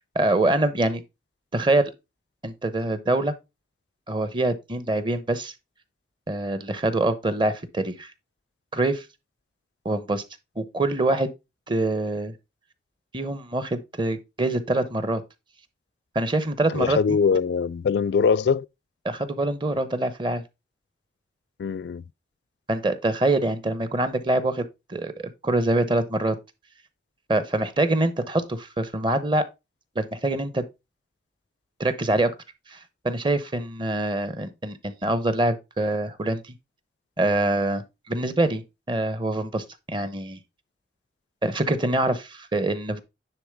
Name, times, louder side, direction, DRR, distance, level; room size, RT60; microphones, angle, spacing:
voice 1, 0.1-1.0 1.5-1.9 2.4-3.3 4.1-5.5 6.3-8.1 8.7-9.1 9.8-10.2 10.6-11.3 11.7-12.3 13.1-15.2 16.1-17.0 19.0-20.4 22.7-26.4 27.3-29.5 30.0-30.6 31.8-32.3 32.7-32.8 33.0-36.5 37.2-38.6 38.9-40.4 41.4-43.0, right 2 dB, 25° right, 0.8 m, -25 dB
voice 2, 16.7-18.7 21.6-22.0, left 6 dB, 70° left, 0.3 m, -22 dB
9.9 x 3.7 x 3.5 m
head